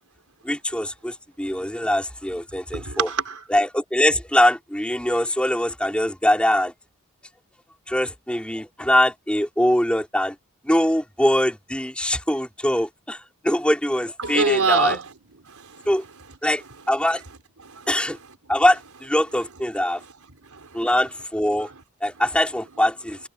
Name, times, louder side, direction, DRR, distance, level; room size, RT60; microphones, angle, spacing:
voice 1, 0.4-3.1 3.5-6.7 7.9-10.4 10.6-15.0 15.9-16.0 16.4-17.2 17.9-18.2 18.5-20.0 20.7-21.7 22.0-23.2, left 1 dB, 5° left, 3.7 m, -22 dB
voice 2, 2.5-3.4 14.2-15.1 15.4-15.9 17.6-17.9 20.0-20.1 20.4-20.9 21.6-21.8, right 4 dB, 80° right, 3.9 m, -26 dB
head